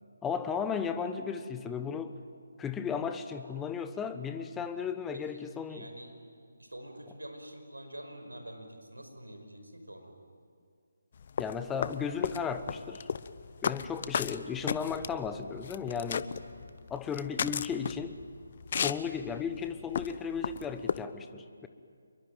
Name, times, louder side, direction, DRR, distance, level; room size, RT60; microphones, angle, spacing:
voice 1, 0.2-2.1 2.6-5.9 11.4-13.1 13.6-16.3 16.9-18.2 18.8-21.7, left 6 dB, 10° left, 9 dB, 1.1 m, -35 dB
voice 2, 5.7-6.1 6.6-10.1, right 1 dB, 90° right, 5 dB, 5.2 m, -46 dB
sound 1, 11.2-21.0, left 7 dB, 40° left, 0.8 m, -35 dB
28.0 x 22.5 x 9.2 m, 2.2 s
figure-of-eight pair, 150°, 0 cm